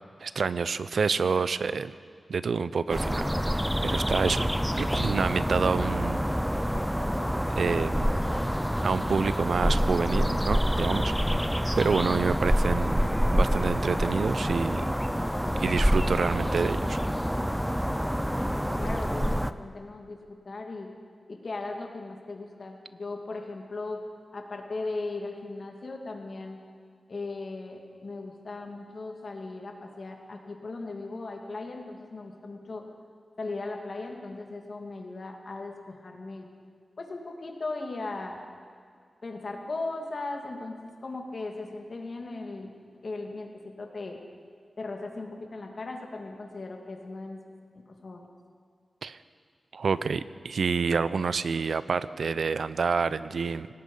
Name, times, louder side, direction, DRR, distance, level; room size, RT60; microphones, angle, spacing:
voice 1, 0.2-1.9 2.3-4.5 4.8-6.2 7.5-8.2 8.8-11.1 11.8-14.8 15.6-17.0 49.0-49.2 49.7-53.7, right 5 dB, 75° right, 15 dB, 0.6 m, -28 dB
sound 1, 2.9-19.5, equal, ahead, 0.6 m, -27 dB
voice 2, 18.8-20.2 20.4-20.9 21.3-24.1 24.3-26.6 27.1-32.8 33.4-36.5 37.0-38.4 39.2-42.7 43.0-43.5 43.8-44.2 44.8-47.4 48.0-48.3, left 3 dB, 50° left, 2 dB, 2.5 m, -37 dB
26.0 x 18.0 x 5.5 m, 2.2 s
wide cardioid pair, 135°, 0 cm